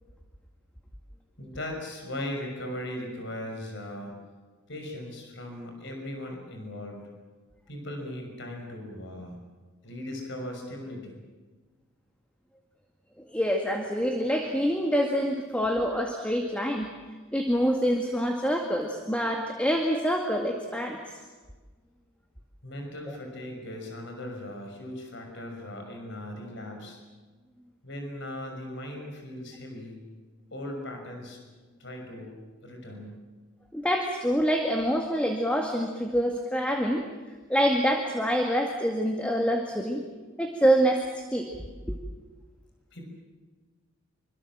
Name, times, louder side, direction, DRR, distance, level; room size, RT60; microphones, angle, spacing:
voice 1, 1.4-4.1 4.7-7.0 7.7-9.4 9.8-11.2 22.6-27.0 27.8-30.0 30.5-31.4 31.8-32.3 32.6-33.2 42.9-43.0, left 1 dB, 55° left, 3 dB, 6.1 m, -38 dB
voice 2, 13.3-16.9 17.3-21.0 33.7-37.0 37.5-40.0 40.4-41.5 41.9-42.0, equal, 5° left, 2 dB, 2.0 m, -26 dB
26.0 x 25.0 x 7.5 m, 1.3 s
head